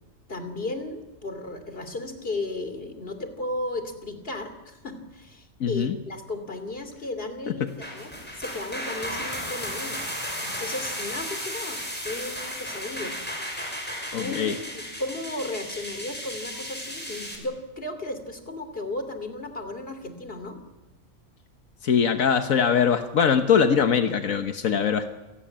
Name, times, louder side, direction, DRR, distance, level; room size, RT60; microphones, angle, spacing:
voice 1, 0.3-10.0 10.4-13.1 14.2-20.6, left 2 dB, 45° left, 8 dB, 3.1 m, -35 dB
voice 2, 5.6-5.9 7.6-7.7 14.1-14.5 21.8-25.1, left 7 dB, 85° left, 7 dB, 1.6 m, -22 dB
sound 1, 7.7-17.4, equal, 5° left, 6.2 m, -34 dB
27.5 x 18.0 x 8.8 m, 1.0 s
omnidirectional pair, 1.4 m